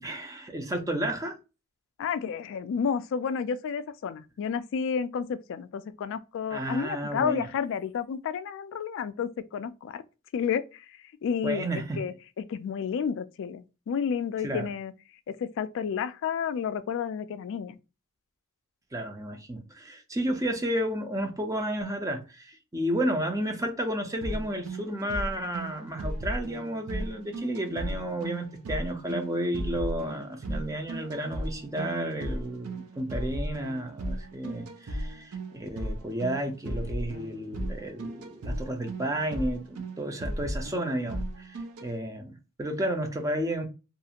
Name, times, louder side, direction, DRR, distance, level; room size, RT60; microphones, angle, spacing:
voice 1, 0.0-1.4 6.5-7.5 11.4-12.0 14.4-14.7 18.9-43.7, right 1 dB, 15° right, 0.5 m, -32 dB
voice 2, 2.0-10.0 10.3-10.9 11.2-14.9 15.3-17.8, left 7 dB, 60° left, 0.3 m, -31 dB
sound 1, 24.2-41.9, right 1 dB, 80° right, 0.6 m, -36 dB
2.5 x 2.4 x 2.8 m
head